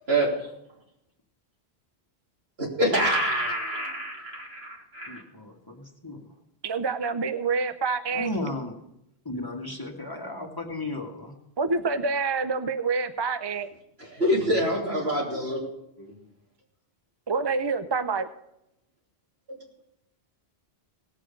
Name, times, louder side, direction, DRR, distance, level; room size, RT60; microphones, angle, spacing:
voice 1, 2.6-5.2 14.0-15.6 16.0-16.1 19.5-19.6, equal, 75° right, -2 dB, 3.3 m, -26 dB
voice 2, 5.1-6.2 8.1-8.7 9.2-11.4, left 2 dB, 20° left, 1 dB, 1.6 m, -35 dB
voice 3, 6.6-8.3 11.6-13.7 17.3-18.3, right 4 dB, 35° right, 10 dB, 0.4 m, -27 dB
18.0 x 7.6 x 5.1 m, 0.80 s
omnidirectional pair, 1.1 m